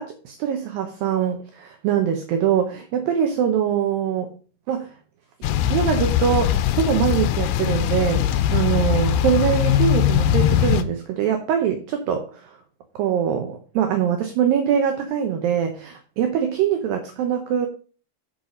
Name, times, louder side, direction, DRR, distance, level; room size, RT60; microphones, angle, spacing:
voice 1, 0.0-4.3 4.7-4.9 5.7-12.5 13.0-17.7, right 8 dB, 75° right, 5 dB, 2.3 m, -23 dB
sound 1, 5.4-10.8, left 10 dB, 85° left, 2.0 m, -21 dB
10.5 x 4.7 x 5.2 m, 0.39 s
omnidirectional pair, 4.8 m